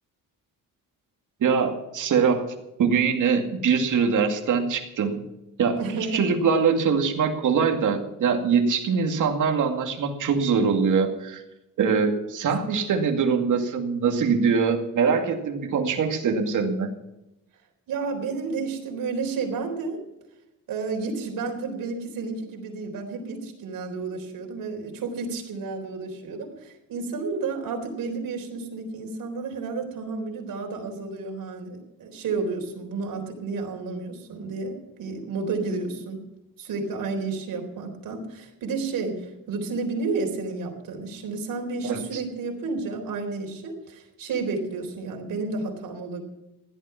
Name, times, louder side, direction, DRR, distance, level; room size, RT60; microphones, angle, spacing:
voice 1, 1.4-2.5 2.8-5.2 5.6-5.8 6.1-11.4 11.8-16.9 41.8-42.2, right 6 dB, 65° right, 4 dB, 2.3 m, -23 dB
voice 2, 5.8-6.3 17.9-20.0 20.7-36.2 36.6-46.2, right 4 dB, 85° right, 3 dB, 4.0 m, -31 dB
16.0 x 12.0 x 5.8 m, 0.92 s
wide cardioid pair, 165°, 34 cm